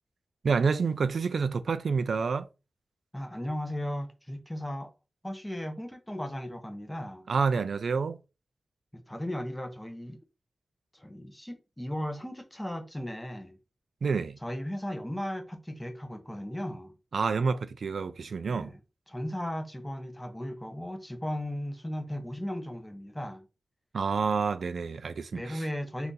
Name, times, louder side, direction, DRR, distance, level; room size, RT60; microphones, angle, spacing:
voice 1, 0.4-2.5 7.3-8.2 14.0-14.4 17.1-18.7 23.9-25.6, right 5 dB, 75° right, 0.3 m, -28 dB
voice 2, 3.1-4.9 5.2-7.3 8.9-10.2 10.9-13.6 14.4-16.9 18.4-18.8 19.1-23.5 25.3-26.1, left 1 dB, 10° left, 0.6 m, -36 dB
2.7 x 2.5 x 3.7 m
wide cardioid pair, 100°, 0 cm